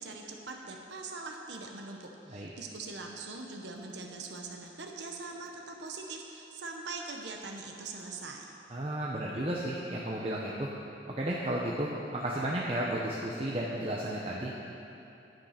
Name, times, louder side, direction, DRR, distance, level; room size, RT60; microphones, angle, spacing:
voice 1, 0.0-8.5, right 3 dB, 70° right, 1 dB, 0.9 m, -42 dB
voice 2, 8.7-10.7 11.2-14.5, right 1 dB, 30° right, -4 dB, 0.8 m, -33 dB
10.5 x 9.1 x 5.8 m, 2.8 s
head